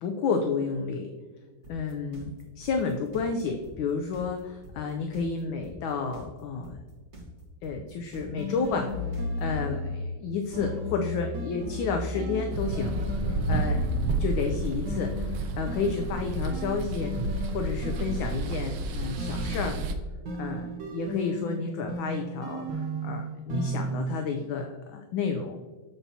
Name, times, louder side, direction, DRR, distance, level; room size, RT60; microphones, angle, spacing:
voice 1, 0.0-1.1 1.7-6.8 7.6-13.2 13.5-13.9 14.2-17.1 17.5-19.8 20.4-25.6, left 5 dB, 75° left, 4 dB, 1.3 m, -31 dB
sound 1, 1.6-9.6, right 2 dB, 35° right, 1.5 m, -47 dB
sound 2, 8.2-10.2 10.5-14.5 14.9-18.6 19.2-24.1, left 1 dB, 65° right, 1.7 m, -34 dB
sound 3, 12.5-19.9, right 2 dB, 90° right, 1.5 m, -31 dB
7.2 x 6.9 x 2.7 m, 1.4 s
omnidirectional pair, 2.3 m